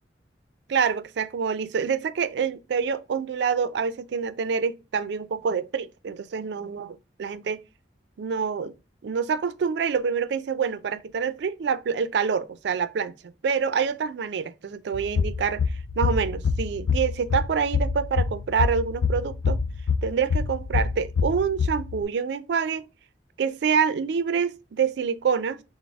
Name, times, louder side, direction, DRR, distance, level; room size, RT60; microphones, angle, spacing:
voice 1, 0.7-7.6 8.2-8.7 9.0-13.1 13.4-15.6 16.0-19.6 20.0-22.9 23.4-25.6, right 6 dB, 65° right, 0.3 m, -26 dB
sound 1, 14.9-22.0, left 5 dB, 85° left, 0.3 m, -26 dB
6.0 x 2.0 x 3.4 m
head